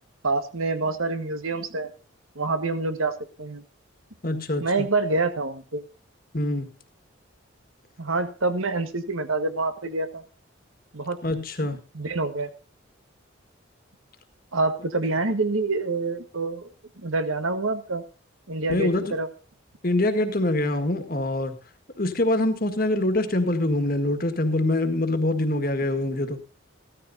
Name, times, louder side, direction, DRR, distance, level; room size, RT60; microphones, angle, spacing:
voice 1, 0.2-1.9 2.3-3.6 4.6-5.8 8.0-10.2 10.9-11.2 11.9-12.5 14.5-18.0 18.5-19.3, right 3 dB, 85° right, 9 dB, 1.5 m, -27 dB
voice 2, 4.2-4.9 6.3-6.7 11.2-11.8 18.7-19.1 19.8-21.6 22.0-26.4, left 1 dB, 45° left, 8 dB, 1.7 m, -24 dB
15.0 x 13.5 x 2.7 m, 0.35 s
head